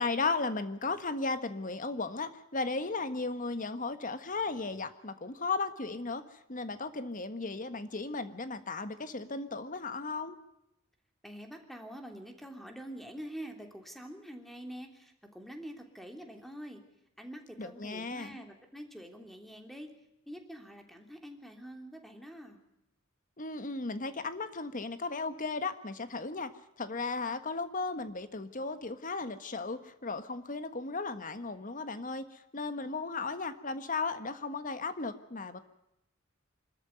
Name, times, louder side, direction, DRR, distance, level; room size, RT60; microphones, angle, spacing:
voice 1, 0.0-10.3 17.6-18.4 23.4-26.5 26.8-35.6, left 3 dB, 45° left, 10 dB, 1.5 m, -35 dB
voice 2, 11.2-16.8 17.2-19.9 20.3-22.6, equal, ahead, 4 dB, 3.1 m, -46 dB
25.5 x 13.5 x 9.5 m, 0.84 s
head